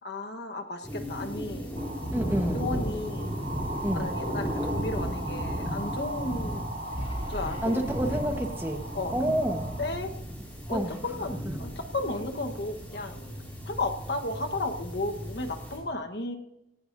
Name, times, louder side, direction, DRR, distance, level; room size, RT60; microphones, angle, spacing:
voice 1, 0.0-1.7 2.5-3.3 3.9-6.7 7.3-7.8 8.9-9.1 9.8-10.1 10.7-13.2 13.7-16.4, left 2 dB, 70° left, 4 dB, 1.3 m, -34 dB
sound 1, 0.8-15.8, equal, 10° left, 5.2 m, -35 dB
sound 2, 1.7-9.9, right 2 dB, 85° right, 4.6 m, -39 dB
voice 2, 2.1-2.6 3.8-4.1 7.6-8.8 9.1-9.7 10.7-11.0, right 1 dB, 15° right, 4 dB, 1.3 m, -28 dB
sound 3, 3.5-11.6, equal, 35° left, 2.0 m, -43 dB
18.0 x 17.5 x 2.7 m, 0.91 s
head